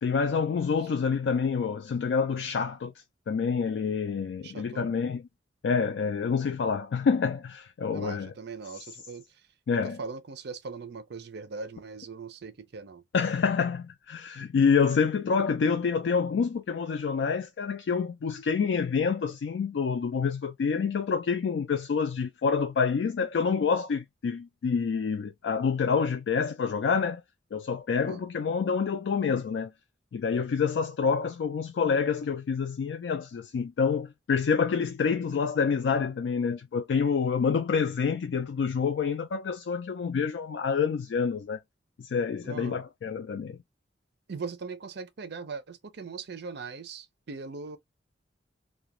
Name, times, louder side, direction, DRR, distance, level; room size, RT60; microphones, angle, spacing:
voice 1, 0.0-2.9 3.3-5.2 5.6-8.3 9.7-10.0 13.1-27.2 27.5-29.7 30.1-41.6 42.0-43.6, left 5 dB, 70° left, 0.3 m, -27 dB
voice 2, 4.4-4.9 7.9-9.2 9.7-13.0 28.0-28.3 42.4-42.8 44.3-47.8, right 4 dB, 65° right, 0.5 m, -40 dB
2.4 x 2.2 x 2.9 m
head